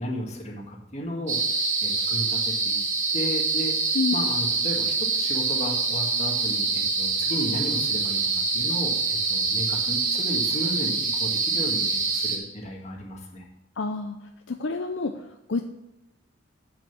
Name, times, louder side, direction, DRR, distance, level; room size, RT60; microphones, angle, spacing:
voice 1, 0.0-1.4 1.8-2.8 3.1-3.8 4.1-13.5, equal, 35° left, 0 dB, 1.7 m, -34 dB
sound 1, 1.3-12.4, right 4 dB, 40° right, 1.8 m, -25 dB
voice 2, 13.8-14.2 14.5-15.6, left 4 dB, 65° left, 5 dB, 0.6 m, -28 dB
8.1 x 6.4 x 6.0 m, 0.92 s
head